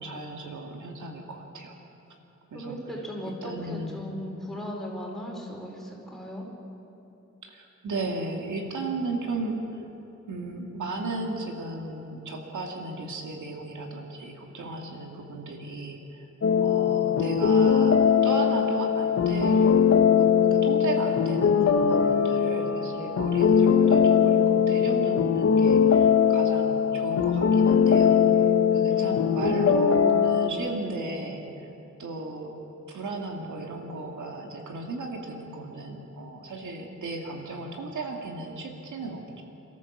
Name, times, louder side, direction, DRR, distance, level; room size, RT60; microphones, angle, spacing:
voice 1, 0.0-1.8 2.5-2.8 3.2-4.0 7.4-9.8 10.3-16.3 16.6-19.9 20.2-31.7 32.0-32.5 32.9-39.4, right 3 dB, 85° right, 1 dB, 2.4 m, -35 dB
voice 2, 2.5-6.5 28.9-30.0, equal, ahead, -2 dB, 4.5 m, -37 dB
sound 1, 16.4-30.5, left 7 dB, 55° left, 1.0 m, -21 dB
28.0 x 14.0 x 7.3 m, 2.9 s
wide cardioid pair, 140°, 29 cm